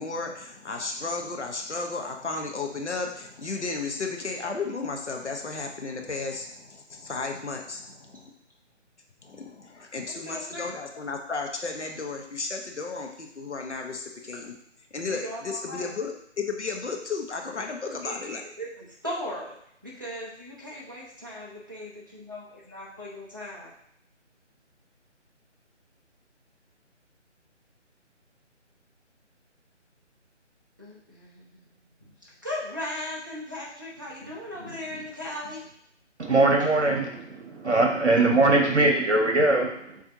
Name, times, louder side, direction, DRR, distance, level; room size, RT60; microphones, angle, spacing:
voice 1, 0.0-8.2 9.2-14.6 14.9-18.4, left 4 dB, 65° left, 2 dB, 0.9 m, -33 dB
voice 2, 10.0-10.7 15.0-15.9 18.0-23.7 30.8-31.6 32.0-35.7, left 1 dB, 15° right, -7 dB, 0.6 m, -38 dB
voice 3, 36.2-40.0, right 2 dB, 65° right, 1 dB, 1.2 m, -21 dB
7.3 x 2.7 x 2.6 m, 0.71 s
figure-of-eight pair, 155°, 37 cm